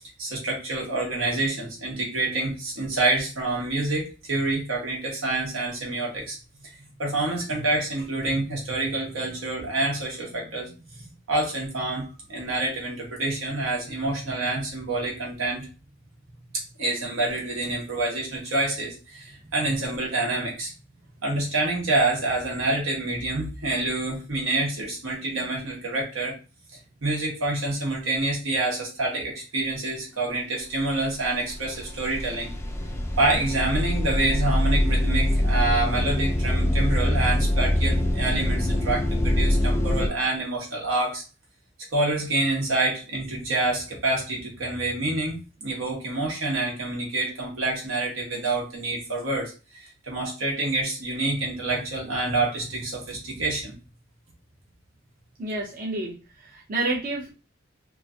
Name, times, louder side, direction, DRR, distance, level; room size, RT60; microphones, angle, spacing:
voice 1, 0.2-6.4 6.6-6.7 7.0-10.7 11.0-15.7 16.8-20.7 21.2-26.4 27.0-32.5 33.2-41.2 41.9-53.7, right 2 dB, 85° right, -2 dB, 1.2 m, -27 dB
sound 1, 31.0-31.2 31.5-40.1, left 1 dB, 15° left, 0.3 m, -24 dB
voice 2, 55.4-57.3, right 2 dB, 45° right, -4 dB, 0.7 m, -29 dB
3.0 x 2.5 x 2.4 m, 0.32 s
head